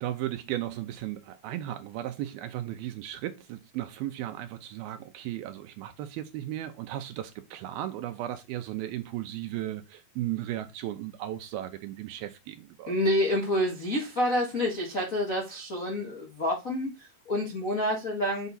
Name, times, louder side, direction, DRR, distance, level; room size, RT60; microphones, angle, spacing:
voice 1, 0.0-12.9, right 13 dB, 85° right, 2.4 m, -35 dB
voice 2, 12.9-18.5, left 1 dB, 70° left, 0.7 m, -28 dB
8.2 x 4.7 x 4.1 m
omnidirectional pair, 4.7 m